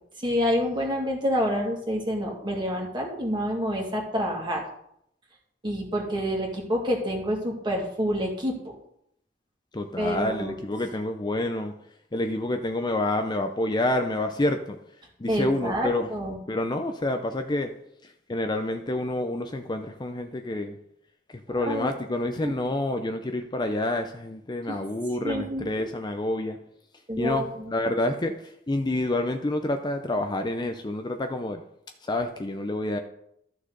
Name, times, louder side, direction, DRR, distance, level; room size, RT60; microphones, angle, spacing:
voice 1, 0.2-4.6 5.6-8.7 10.0-10.6 15.3-16.4 21.6-21.9 22.4-22.5 24.7-24.8 25.2-25.8 27.1-27.5, equal, 25° right, -1 dB, 2.2 m, -28 dB
voice 2, 9.7-11.7 12.1-14.8 15.2-16.2 16.5-17.7 18.0-20.8 21.3-26.6 27.2-31.6 32.0-33.0, left 1 dB, 25° left, 6 dB, 0.6 m, -28 dB
13.0 x 6.4 x 3.9 m, 0.74 s
head